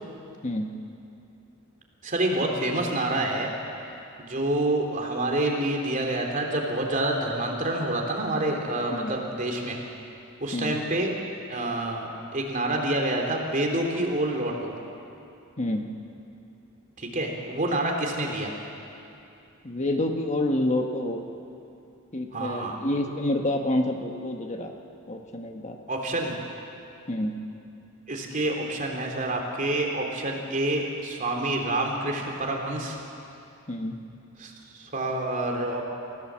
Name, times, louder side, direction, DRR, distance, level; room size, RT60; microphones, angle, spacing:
voice 1, 2.0-3.5 4.2-9.8 10.4-11.1 11.5-14.7 17.0-18.6 22.3-22.8 25.9-26.4 28.1-33.0 34.4-35.9, right 1 dB, 40° right, 1 dB, 3.1 m, -27 dB
voice 2, 19.6-21.2 22.1-24.7 25.1-25.8 27.1-27.4 33.7-34.0, left 1 dB, 35° left, 3 dB, 1.3 m, -28 dB
28.5 x 16.0 x 7.5 m, 2.7 s
head